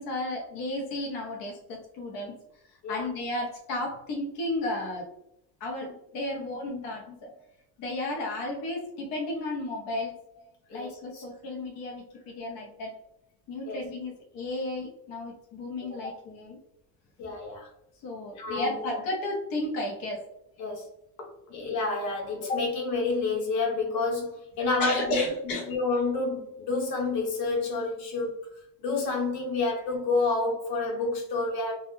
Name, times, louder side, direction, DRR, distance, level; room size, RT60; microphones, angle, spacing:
voice 1, 0.0-2.4 2.7-5.1 5.6-7.3 7.8-10.2 10.7-13.0 13.5-16.6 18.0-20.2 21.2-21.3 24.8-25.7, left 1 dB, 50° left, 0 dB, 0.7 m, -33 dB
voice 2, 10.7-11.2 13.7-13.8 17.2-17.7 18.4-18.8 20.6-20.9 21.5-25.3 25.7-28.4 28.8-31.7, left 3 dB, 85° left, 0 dB, 0.9 m, -29 dB
2.3 x 2.1 x 3.0 m, 0.78 s
supercardioid pair, 140°, 47 cm